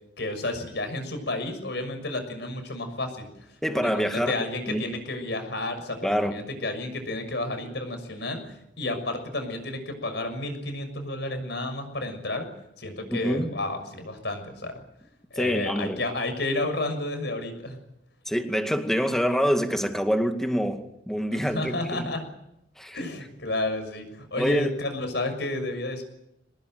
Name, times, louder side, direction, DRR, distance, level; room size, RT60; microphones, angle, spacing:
voice 1, 0.2-3.3 3.7-12.5 12.8-14.7 15.3-17.8 21.4-22.3 22.9-26.0, left 2 dB, 65° left, 7 dB, 6.4 m, -31 dB
voice 2, 3.6-4.4 4.7-4.9 6.0-6.4 13.1-13.5 15.3-16.0 18.3-22.1 22.8-23.0 24.4-24.7, equal, ahead, 6 dB, 2.1 m, -26 dB
24.5 x 19.5 x 9.2 m, 0.81 s
head